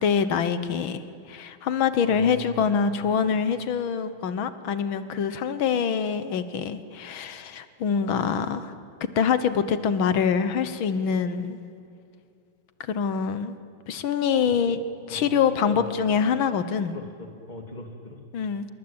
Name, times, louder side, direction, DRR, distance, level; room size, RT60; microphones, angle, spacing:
voice 1, 0.0-8.7 9.2-11.6 12.8-13.6 13.9-14.8 15.1-16.9 18.3-18.7, left 7 dB, 90° left, 12 dB, 2.0 m, -25 dB
voice 2, 2.0-3.0 14.6-16.0 16.9-18.2, left 1 dB, 20° left, 4 dB, 2.9 m, -41 dB
27.5 x 23.0 x 8.9 m, 2.5 s
omnidirectional pair, 2.1 m